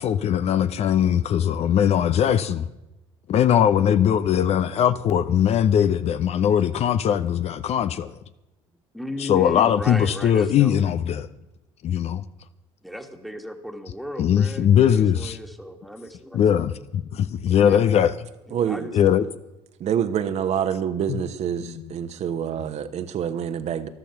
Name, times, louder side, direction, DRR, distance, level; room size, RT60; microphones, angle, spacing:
voice 1, 0.0-2.6 3.3-8.2 9.2-11.3 11.8-12.2 14.2-15.4 16.3-18.1 18.9-19.2 21.1-21.2 21.6-21.7, left 9 dB, 50° left, 0.7 m, -20 dB
voice 2, 8.9-10.8 12.8-16.6 17.5-18.0 18.5-18.9, equal, ahead, 1.7 m, -36 dB
voice 3, 18.5-19.1 19.8-23.9, right 9 dB, 50° right, 1.2 m, -27 dB
13.5 x 12.0 x 5.9 m
hypercardioid pair, 65°, 14 cm